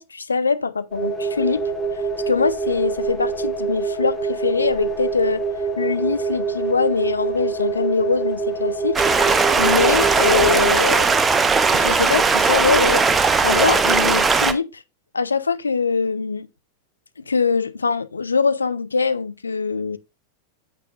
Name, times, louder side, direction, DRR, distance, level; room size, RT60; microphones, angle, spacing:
voice 1, 0.0-1.6 2.3-5.4 5.8-9.1 9.6-11.2 11.7-13.1 13.4-14.8 15.1-16.5 17.2-20.0, left 4 dB, 75° left, 0.9 m, -22 dB
sound 1, 0.9-10.7, right 4 dB, 10° left, 4.0 m, -25 dB
Stream, 9.0-14.5, right 4 dB, 15° right, 1.2 m, -18 dB
9.0 x 8.9 x 2.6 m
figure-of-eight pair, 90°, 0 cm